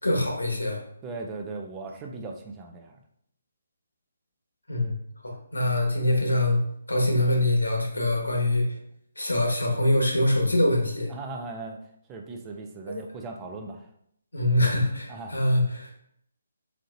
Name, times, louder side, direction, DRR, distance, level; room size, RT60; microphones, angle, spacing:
voice 1, 0.0-0.8 4.7-4.9 5.2-6.6 6.9-8.6 9.2-11.1 12.9-13.0 14.3-16.0, left 1 dB, 85° left, 1 dB, 1.3 m, -24 dB
voice 2, 1.0-3.0 11.1-11.8 12.1-13.9 15.1-15.4, right 3 dB, 20° right, 3 dB, 0.5 m, -38 dB
4.3 x 3.7 x 2.6 m, 0.70 s
figure-of-eight pair, 145°, 0 cm